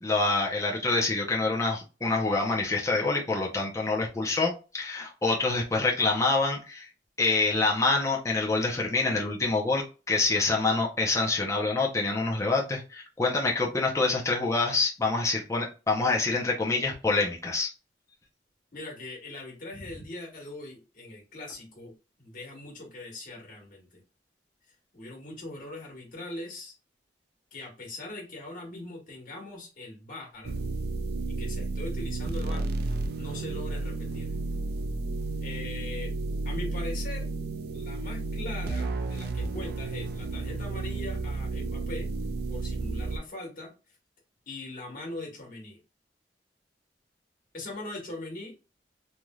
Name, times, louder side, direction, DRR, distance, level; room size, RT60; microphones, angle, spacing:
voice 1, 0.0-6.9 7.2-17.7, left 3 dB, 15° left, -2 dB, 0.6 m, -26 dB
voice 2, 18.7-21.9 22.2-24.0 24.9-26.7 27.5-30.6 31.3-34.4 35.4-36.1 36.4-37.3 37.7-42.1 42.5-43.7 44.5-45.8 47.5-48.5, left 2 dB, 50° left, -1 dB, 1.5 m, -41 dB
sound 1, 30.4-43.2, right 3 dB, 60° right, 0.4 m, -32 dB
3.1 x 2.6 x 2.3 m, 0.31 s
head